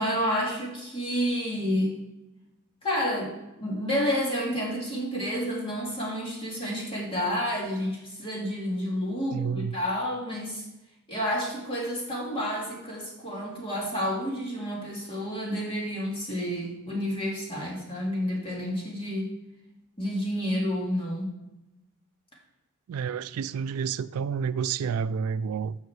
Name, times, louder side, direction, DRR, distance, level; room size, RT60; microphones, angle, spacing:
voice 1, 0.0-2.0 2.8-10.6 11.1-19.3 20.0-21.4, equal, 25° left, 2.4 m, -30 dB
voice 2, 9.3-9.8 22.9-25.8, right 6 dB, 85° right, 0.3 m, -29 dB
6.4 x 5.7 x 7.3 m
head